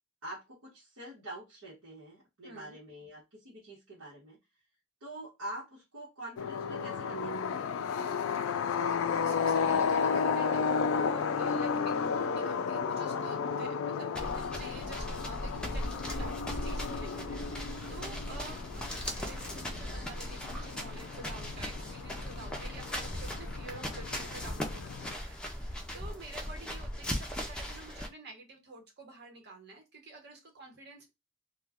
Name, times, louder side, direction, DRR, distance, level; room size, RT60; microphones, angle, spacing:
voice 1, 0.2-4.4 5.0-7.7, right 1 dB, 80° right, -6 dB, 1.1 m, -45 dB
voice 2, 2.4-2.8 8.3-31.1, right 3 dB, 50° right, 2 dB, 0.9 m, -49 dB
sound 1, 6.4-25.1, left 6 dB, 70° left, 0.3 m, -33 dB
sound 2, 14.2-28.1, equal, 5° left, 0.4 m, -38 dB
2.4 x 2.2 x 3.4 m, 0.23 s
head